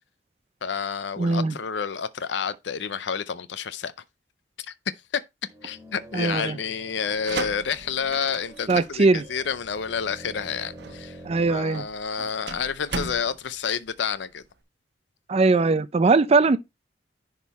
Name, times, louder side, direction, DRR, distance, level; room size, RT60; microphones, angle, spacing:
voice 1, 0.6-3.9 4.6-4.7 5.1-5.2 5.6-11.2 11.5-14.4, left 6 dB, 70° left, 0.5 m, -29 dB
voice 2, 1.2-1.5 6.1-6.6 8.7-9.2 11.2-11.8 15.3-16.6, right 3 dB, 35° right, 0.4 m, -20 dB
sound 1, 5.4-11.7, right 1 dB, 20° right, 1.7 m, -46 dB
sound 2, 7.0-14.6, right 4 dB, 65° right, 1.0 m, -38 dB
10.5 x 3.7 x 4.1 m
head